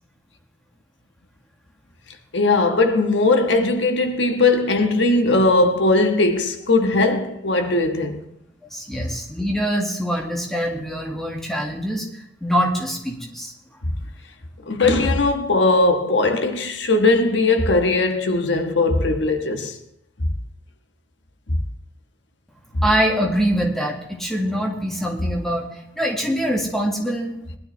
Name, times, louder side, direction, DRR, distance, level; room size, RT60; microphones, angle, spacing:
voice 1, 2.3-8.2 13.8-13.9 14.7-19.8, left 2 dB, 75° left, 1.3 m, -19 dB
voice 2, 8.7-12.1 12.4-13.5 22.8-27.3, equal, ahead, 1.9 m, -24 dB
19.0 x 12.5 x 3.3 m
head